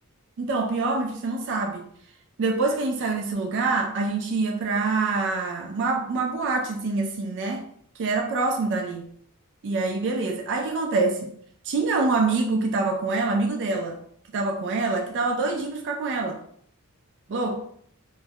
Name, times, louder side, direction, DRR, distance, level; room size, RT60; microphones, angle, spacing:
voice 1, 0.4-1.9 2.4-7.7 8.0-9.1 9.6-11.3 11.6-14.0 14.3-16.4 17.3-17.6, right 3 dB, 55° right, 2 dB, 0.3 m, -25 dB
2.2 x 2.0 x 2.7 m, 0.63 s
head